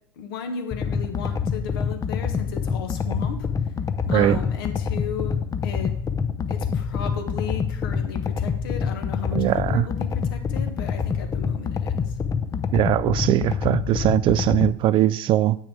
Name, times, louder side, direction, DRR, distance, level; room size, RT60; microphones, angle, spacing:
voice 1, 0.2-3.5 4.1-6.1 6.5-12.1, left 7 dB, 70° left, 1.5 m, -35 dB
sound 1, 0.7-14.7, left 6 dB, 25° left, 0.7 m, -26 dB
voice 2, 9.3-9.9 12.7-15.6, right 13 dB, 45° right, 0.4 m, -20 dB
8.7 x 6.3 x 4.9 m
hypercardioid pair, 75°, 12 cm